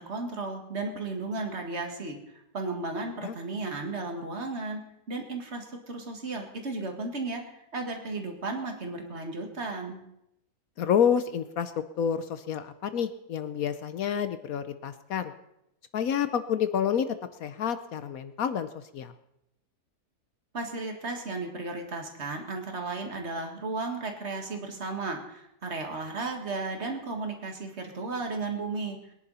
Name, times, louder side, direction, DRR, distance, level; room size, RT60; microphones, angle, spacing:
voice 1, 0.0-4.8 5.1-10.0 20.5-29.0, right 3 dB, 45° right, 3 dB, 2.2 m, -34 dB
voice 2, 10.8-11.7 12.0-15.3 15.9-18.7 18.9-19.1, left 8 dB, 65° left, 11 dB, 1.1 m, -28 dB
22.0 x 10.5 x 4.2 m, 0.82 s
omnidirectional pair, 1.7 m